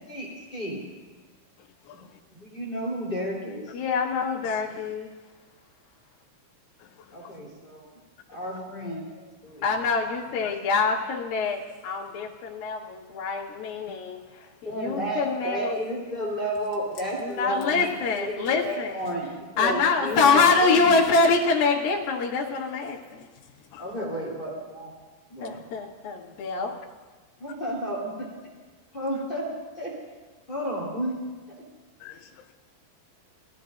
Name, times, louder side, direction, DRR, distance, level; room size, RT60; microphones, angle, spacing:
voice 1, 0.1-0.8 2.3-3.7 7.1-7.9 8.3-9.6 14.6-21.0 23.8-24.9 25.3-25.6 27.4-28.3 28.9-29.5 29.8-29.9 30.5-31.1 31.6-31.7, equal, 15° left, -4 dB, 2.6 m, -32 dB
voice 2, 1.8-2.2 4.5-4.9 6.8-7.3 10.4-10.8 23.7-23.8 32.0-32.5, left 10 dB, 85° left, 5 dB, 2.8 m, -49 dB
voice 3, 3.7-5.1 9.6-11.6 11.8-14.2 14.6-15.8 17.2-18.9 19.6-23.2 25.4-26.7, left 4 dB, 70° left, -4 dB, 3.2 m, -25 dB
20.0 x 14.5 x 2.6 m, 1.3 s
omnidirectional pair, 4.5 m